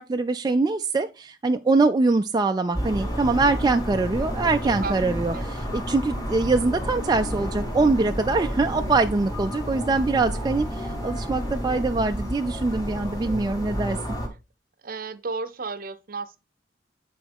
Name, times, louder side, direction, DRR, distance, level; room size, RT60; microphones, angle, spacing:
voice 1, 0.0-14.0, right 3 dB, 20° right, 0.3 m, -23 dB
sound 1, 2.7-14.3, equal, 20° left, 1.8 m, -30 dB
voice 2, 14.8-16.4, right 4 dB, 50° right, 0.6 m, -33 dB
9.3 x 4.6 x 3.5 m
head